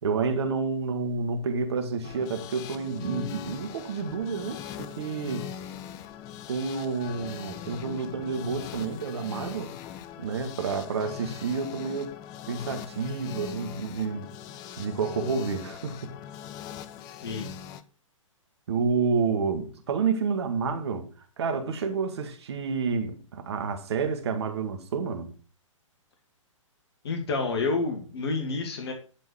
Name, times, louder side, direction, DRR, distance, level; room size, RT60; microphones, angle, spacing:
voice 1, 0.0-5.5 6.5-9.7 10.2-12.1 12.5-14.3 14.8-16.1 18.7-21.1 21.4-25.3, right 5 dB, 50° right, 1.9 m, -29 dB
sound 1, 2.0-17.8, left 9 dB, 20° left, 0.7 m, -41 dB
voice 2, 17.1-17.5 27.0-28.9, left 3 dB, 50° left, 2.1 m, -29 dB
12.0 x 4.6 x 6.3 m
figure-of-eight pair, 120°, 17 cm